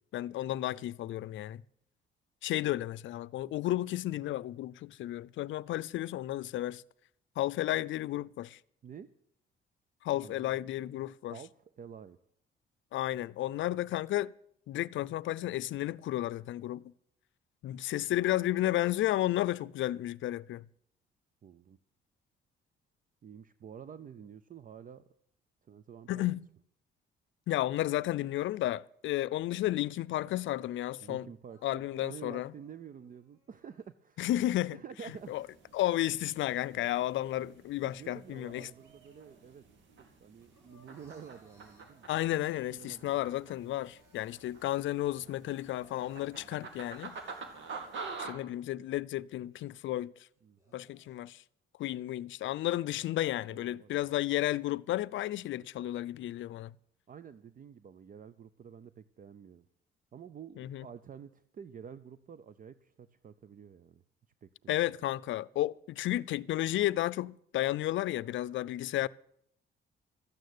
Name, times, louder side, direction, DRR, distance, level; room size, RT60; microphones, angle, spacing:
voice 1, 0.1-1.6 2.4-6.8 7.4-8.6 10.0-11.4 12.9-14.3 14.7-16.8 17.6-20.7 26.1-26.5 27.5-31.3 31.6-32.5 34.2-34.8 35.3-35.4 35.7-38.7 42.1-47.2 48.2-50.1 50.7-51.4 51.8-56.7 60.6-60.8 64.7-69.1, left 14 dB, 75° left, 0.5 m, -32 dB
voice 2, 10.2-10.6 11.3-11.5 11.8-12.2 18.0-18.4 21.4-21.8 23.2-25.0 25.7-26.4 31.0-34.3 34.7-35.6 37.8-39.6 40.2-42.1 42.7-43.3 46.3-46.7 50.4-50.8 52.9-53.1 53.5-54.1 57.1-59.7 60.1-64.0 64.4-64.9 69.0-69.1, right 7 dB, 45° right, 0.7 m, -49 dB
Crying sobbing, 31.5-33.9 34.5-36.3 36.8-39.7 40.0-42.7 43.1-43.2 43.5-48.3 48.8-48.9 49.5-49.6 50.3-51.3, right 1 dB, 15° right, 5.1 m, -67 dB
sound 1, 35.1-48.3, right 4 dB, 70° right, 2.5 m, -48 dB
13.5 x 9.2 x 9.5 m
cardioid pair, 90°, 20 cm